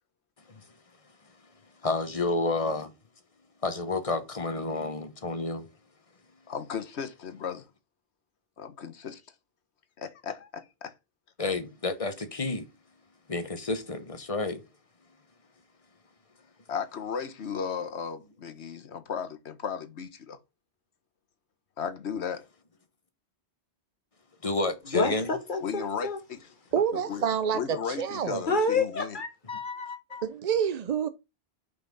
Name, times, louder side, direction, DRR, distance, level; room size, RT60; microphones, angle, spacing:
voice 1, 1.8-2.9 3.6-5.6 11.4-12.7 13.3-14.6 24.4-25.3, left 3 dB, 35° left, 1.1 m, -30 dB
voice 2, 6.5-7.7 8.6-9.2 10.0-10.9 16.7-20.4 21.8-22.5 25.6-27.2 27.5-29.2, left 6 dB, 85° left, 1.3 m, -35 dB
voice 3, 24.9-26.2 28.5-30.2, left 3 dB, 50° left, 1.6 m, -29 dB
voice 4, 26.7-28.4 30.2-31.1, right 8 dB, 50° right, 0.5 m, -28 dB
5.8 x 5.1 x 5.2 m
omnidirectional pair, 1.1 m